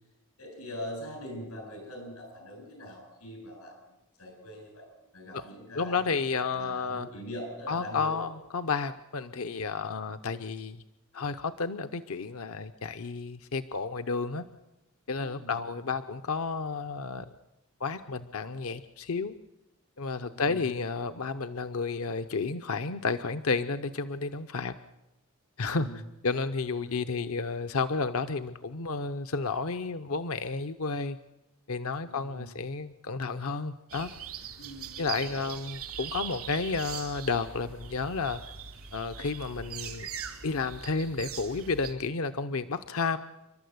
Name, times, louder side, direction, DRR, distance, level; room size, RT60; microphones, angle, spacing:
voice 1, 0.4-3.7 4.2-4.8 5.1-6.0 6.4-8.2 15.3-15.6 20.3-20.6 25.7-26.0 32.0-32.5 34.6-35.4, equal, 90° left, 3 dB, 7.9 m, -42 dB
voice 2, 5.7-7.1 7.7-10.8 11.1-14.4 15.1-17.3 17.8-19.3 20.0-24.7 25.6-31.2 31.7-34.1 35.0-38.4 38.9-40.1 40.4-43.2, left 4 dB, 70° left, 9 dB, 0.7 m, -31 dB
sound 1, 33.9-41.9, right 8 dB, 85° right, 2.8 m, -41 dB
30.0 x 12.5 x 8.0 m, 0.94 s
head